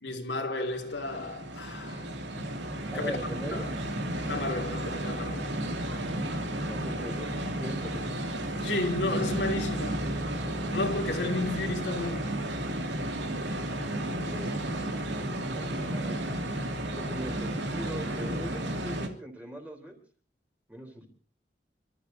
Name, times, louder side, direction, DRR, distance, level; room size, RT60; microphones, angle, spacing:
voice 1, 0.0-2.1 2.9-3.2 3.5-3.7 4.3-5.5 8.6-10.0 10.7-12.3, left 2 dB, 85° left, 2.7 m, -32 dB
sound 1, 0.7-19.1, right 1 dB, 90° right, 2.6 m, -33 dB
voice 2, 2.9-3.7 6.7-8.2 14.1-14.5 15.4-16.2 16.9-19.9 20.7-21.1, right 1 dB, 10° right, 3.8 m, -40 dB
29.0 x 13.5 x 2.8 m
head